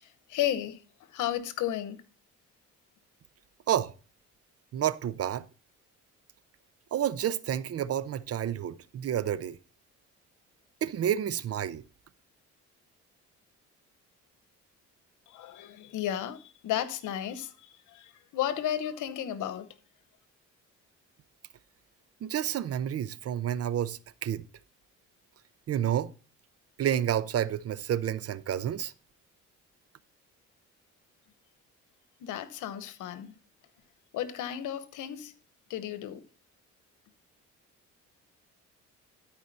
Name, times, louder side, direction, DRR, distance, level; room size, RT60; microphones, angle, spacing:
voice 1, 0.3-0.8 1.1-2.0 15.3-19.7 32.2-33.3 34.1-35.3 35.7-36.2, left 11 dB, 85° left, 1.0 m, -33 dB
voice 2, 4.7-5.5 6.9-9.6 10.8-11.8 22.2-24.4 25.7-26.1 26.8-28.9, right 10 dB, 55° right, 0.6 m, -30 dB
13.0 x 4.8 x 4.1 m
cardioid pair, 90°, 30 cm